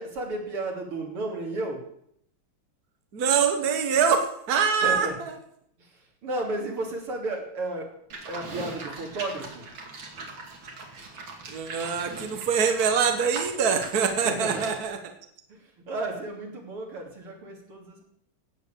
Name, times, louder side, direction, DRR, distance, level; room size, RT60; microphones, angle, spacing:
voice 1, 0.0-1.8 4.8-5.1 5.8-7.9 8.3-9.5 14.2-14.6 15.5-18.1, right 2 dB, 80° right, 1 dB, 4.2 m, -33 dB
voice 2, 3.1-5.3 11.5-15.1, right 6 dB, 45° right, 6 dB, 1.8 m, -24 dB
Livestock farm animals working animals, 8.1-14.8, right 3 dB, 65° right, 3.3 m, -40 dB
16.5 x 8.2 x 8.5 m, 0.71 s
omnidirectional pair, 2.4 m